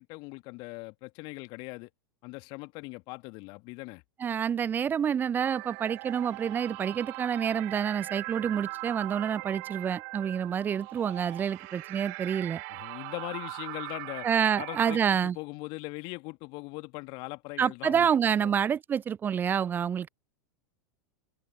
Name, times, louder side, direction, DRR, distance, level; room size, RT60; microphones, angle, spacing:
voice 1, 0.0-1.9 2.2-4.0 12.7-14.3 14.6-18.1 18.4-18.6, left 27 dB, 45° left, 2.1 m, -40 dB
voice 2, 4.2-12.6 14.2-15.4 17.6-20.1, right 8 dB, 20° right, 0.3 m, -28 dB
sound 1, 5.4-15.0, right 40 dB or more, 50° right, 2.0 m, -40 dB
figure-of-eight pair, 85°, 11 cm